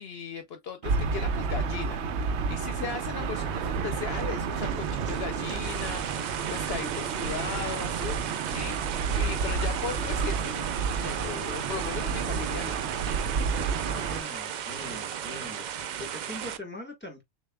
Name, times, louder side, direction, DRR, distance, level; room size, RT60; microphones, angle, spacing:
voice 1, 0.0-8.2 8.4-10.7 11.0-12.8, left 6 dB, 65° left, 0.8 m, -37 dB
Gull seagull / Ocean, 0.8-14.2, right 5 dB, 80° right, 0.9 m, -31 dB
sound 1, 2.7-16.6, right 8 dB, 60° right, 0.5 m, -36 dB
voice 2, 13.8-17.2, left 1 dB, 10° left, 1.4 m, -42 dB
6.6 x 2.4 x 2.3 m
omnidirectional pair, 1.2 m